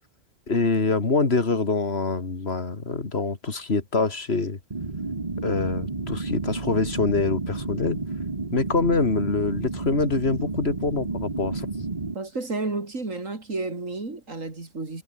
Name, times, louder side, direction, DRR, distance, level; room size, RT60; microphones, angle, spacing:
voice 1, 0.5-4.6 5.4-8.0 8.5-11.7, left 3 dB, 45° left, 2.6 m, -25 dB
sound 1, 4.7-12.1, right 3 dB, 30° right, 1.7 m, -31 dB
voice 2, 12.1-15.0, right 3 dB, 65° right, 4.3 m, -31 dB
omnidirectional pair, 1.5 m